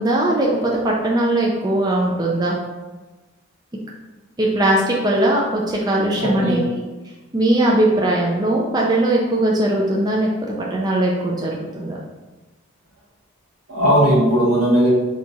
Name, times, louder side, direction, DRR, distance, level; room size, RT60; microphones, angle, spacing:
voice 1, 0.0-2.6 4.4-6.6 7.3-12.0, right 1 dB, 20° right, -3 dB, 0.4 m, -19 dB
voice 2, 6.1-6.6 13.7-14.9, equal, 80° right, -4 dB, 1.3 m, -17 dB
4.5 x 2.4 x 4.0 m, 1.2 s
head